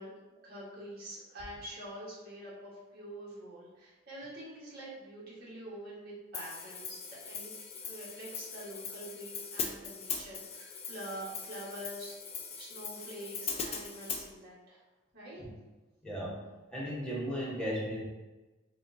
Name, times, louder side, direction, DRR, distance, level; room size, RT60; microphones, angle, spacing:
voice 1, 0.0-7.0 7.2-7.5 7.8-12.1 12.6-14.8 15.1-15.5, right 1 dB, 55° right, -7 dB, 1.5 m, -46 dB
Hi-hat, 6.3-14.2, left 6 dB, 30° left, 0.4 m, -40 dB
voice 2, 16.0-16.4 16.7-18.0, equal, 5° left, -6 dB, 1.1 m, -35 dB
6.3 x 2.5 x 2.6 m, 1.2 s
head